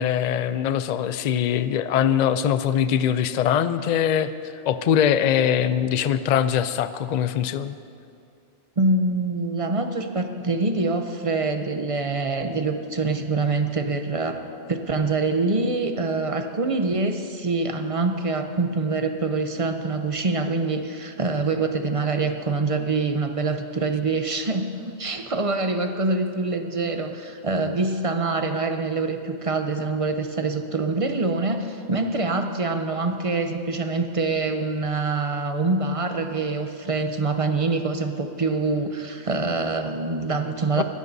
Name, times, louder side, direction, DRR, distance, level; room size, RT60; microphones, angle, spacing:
voice 1, 0.0-4.3 4.7-7.8 40.8-40.9, left 9 dB, 55° left, 12 dB, 0.5 m, -22 dB
voice 2, 8.8-14.4 14.7-40.8, right 3 dB, 35° right, 6 dB, 0.7 m, -25 dB
21.0 x 13.5 x 2.7 m, 2.5 s
omnidirectional pair, 1.2 m